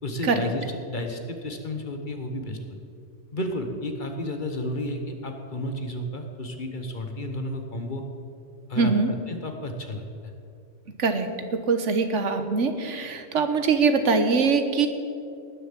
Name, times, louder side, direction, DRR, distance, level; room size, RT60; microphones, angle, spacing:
voice 1, 0.0-2.6 3.3-8.0 8.7-8.9 9.3-10.0, left 1 dB, 40° left, 4 dB, 1.3 m, -32 dB
voice 2, 8.8-9.1 11.0-14.9, right 4 dB, 75° right, 8 dB, 1.4 m, -23 dB
18.0 x 7.1 x 7.4 m, 2.5 s
omnidirectional pair, 1.2 m